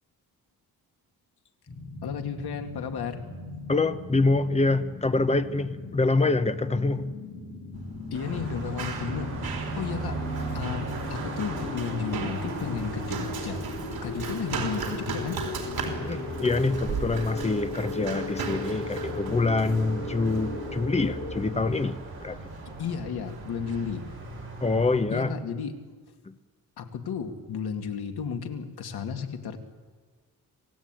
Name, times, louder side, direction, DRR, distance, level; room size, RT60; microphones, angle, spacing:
sound 1, 1.7-21.4, left 3 dB, 45° left, 5.1 m, -38 dB
voice 1, 2.0-3.2 8.1-10.2 10.5-13.6 14.0-15.4 22.8-24.1 25.1-25.8 26.8-29.6, left 6 dB, 85° left, 5 dB, 2.4 m, -33 dB
voice 2, 3.7-7.1 16.0-22.4 24.6-25.3 26.3-26.4, left 3 dB, 15° left, 11 dB, 1.0 m, -26 dB
Run, 7.7-25.0, right 5 dB, 70° right, 4.2 m, -38 dB
Car passing by, 8.1-25.3, right 3 dB, 35° right, 7.0 m, -39 dB
26.5 x 16.5 x 9.2 m, 1.5 s
wide cardioid pair, 145°, 37 cm